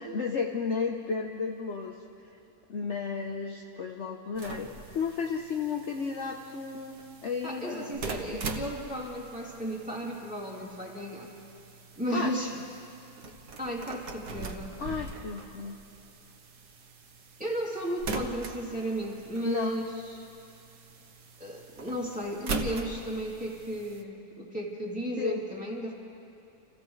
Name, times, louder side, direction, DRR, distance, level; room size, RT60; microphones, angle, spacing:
voice 1, 0.0-2.0 2.7-8.0 8.3-8.5 12.1-12.3 14.8-15.8 19.4-19.8 25.2-25.4, left 5 dB, 50° left, 2 dB, 1.1 m, -33 dB
sound 1, 4.3-24.0, right 3 dB, 90° right, 1.7 m, -42 dB
voice 2, 7.4-11.3 12.0-12.5 13.6-14.8 17.4-20.3 21.4-25.9, right 1 dB, 5° right, -4 dB, 3.0 m, -34 dB
30.0 x 28.5 x 3.2 m, 2.8 s
omnidirectional pair, 1.7 m